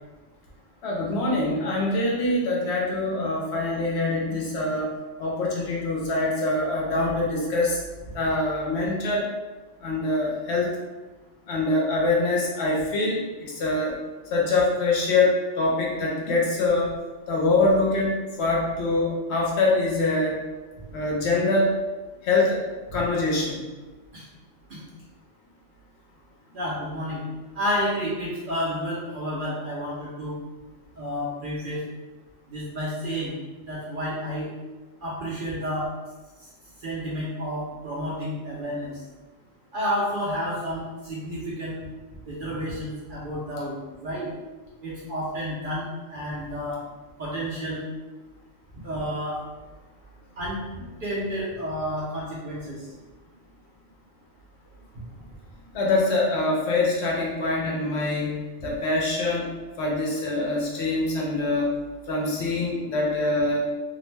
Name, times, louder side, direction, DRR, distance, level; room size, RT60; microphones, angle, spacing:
voice 1, 0.8-4.9 5.2-7.8 8.1-9.2 9.8-10.7 11.5-14.0 14.3-16.9 17.3-18.1 18.4-20.4 20.9-21.7 22.2-22.6 22.9-23.6 55.7-58.4 58.6-59.5 59.8-61.7 62.1-63.6, left 2 dB, 65° left, -2 dB, 0.8 m, -24 dB
voice 2, 26.5-27.2 27.6-30.4 31.0-31.8 32.5-33.3 33.7-34.5 35.0-35.9 36.8-38.9 39.7-41.8 42.3-44.3 44.8-46.8 47.2-47.8 48.8-49.4 50.4-50.6 51.0-52.8, equal, 55° right, -7 dB, 0.6 m, -30 dB
2.4 x 2.1 x 3.1 m, 1.2 s
omnidirectional pair, 1.3 m